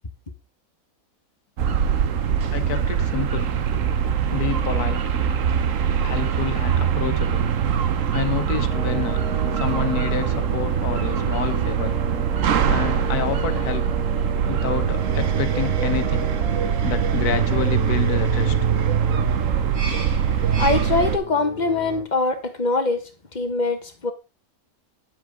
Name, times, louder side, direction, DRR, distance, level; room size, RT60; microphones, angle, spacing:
sound 1, 1.6-21.2, right 8 dB, 60° right, 1.2 m, -22 dB
voice 1, 2.5-3.5 4.3-5.0 6.0-7.5 8.1-9.2 9.5-12.0 12.7-13.9 14.5-16.3 16.8-18.6, left 9 dB, 90° left, 1.5 m, -29 dB
sound 2, 8.7-22.0, right 1 dB, 20° right, 2.2 m, -35 dB
voice 2, 20.6-24.1, left 3 dB, 30° left, 1.4 m, -23 dB
9.5 x 8.0 x 3.7 m
omnidirectional pair, 1.6 m